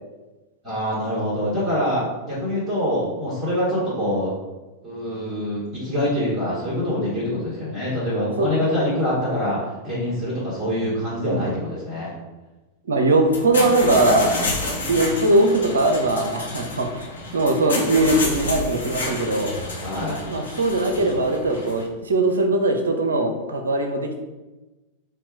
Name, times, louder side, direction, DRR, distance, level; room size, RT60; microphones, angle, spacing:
voice 1, 0.6-4.3 4.8-9.6 9.8-12.1 19.8-20.2, left 1 dB, 30° right, -9 dB, 1.5 m, -25 dB
voice 2, 12.9-14.3 14.9-17.0 17.3-19.5 20.2-24.2, right 2 dB, 70° right, 5 dB, 0.6 m, -20 dB
sound 1, 13.2-21.8, left 2 dB, 70° left, 0.9 m, -30 dB
4.3 x 2.3 x 4.6 m, 1.1 s
figure-of-eight pair, 90°, 0 cm